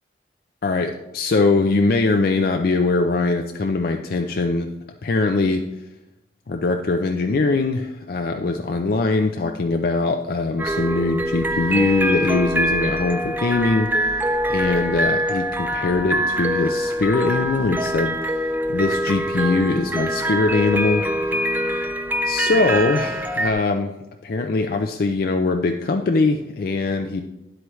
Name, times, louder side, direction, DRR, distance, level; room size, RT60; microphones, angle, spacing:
voice 1, 0.6-4.7 5.0-5.6 6.5-14.2 14.5-18.3 18.7-21.0 22.2-24.0 24.2-27.2, left 3 dB, 55° left, 5 dB, 0.4 m, -22 dB
sound 1, 10.6-23.5, equal, 10° right, 0.4 m, -24 dB
9.8 x 7.8 x 3.1 m, 0.93 s
head